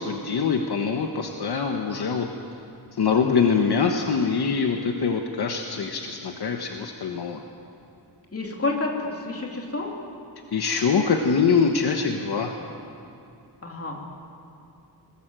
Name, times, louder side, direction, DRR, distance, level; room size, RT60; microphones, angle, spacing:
voice 1, 0.0-2.3 2.9-7.4 10.5-12.6, left 5 dB, 65° left, 3 dB, 1.3 m, -24 dB
voice 2, 8.3-9.9 13.6-14.0, left 3 dB, 35° left, 0 dB, 2.9 m, -29 dB
20.5 x 20.5 x 7.7 m, 2.6 s
wide cardioid pair, 175°, 42 cm